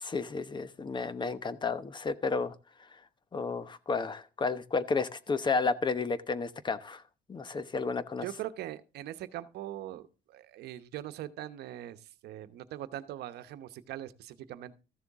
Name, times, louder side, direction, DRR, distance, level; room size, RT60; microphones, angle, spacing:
voice 1, 0.0-2.5 3.3-7.0 7.3-8.2, left 4 dB, 25° left, 0.9 m, -32 dB
voice 2, 8.2-14.8, right 13 dB, 75° right, 1.0 m, -41 dB
14.0 x 7.0 x 3.6 m
cardioid pair, 110°, 17 cm